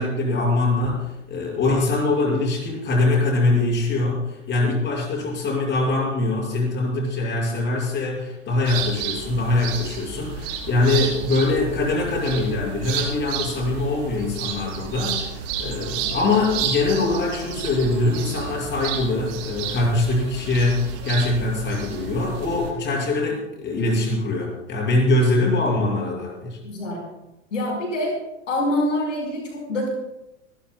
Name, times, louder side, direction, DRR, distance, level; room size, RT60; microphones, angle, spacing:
voice 1, 0.0-26.6, left 2 dB, 30° left, -2 dB, 6.5 m, -23 dB
sound 1, 8.6-22.7, right 7 dB, 50° right, 5.1 m, -31 dB
voice 2, 26.6-27.0 27.5-28.1 28.5-29.9, left 1 dB, 75° left, 0 dB, 5.2 m, -25 dB
29.5 x 13.5 x 2.4 m, 0.94 s
hypercardioid pair, 95°, 37 cm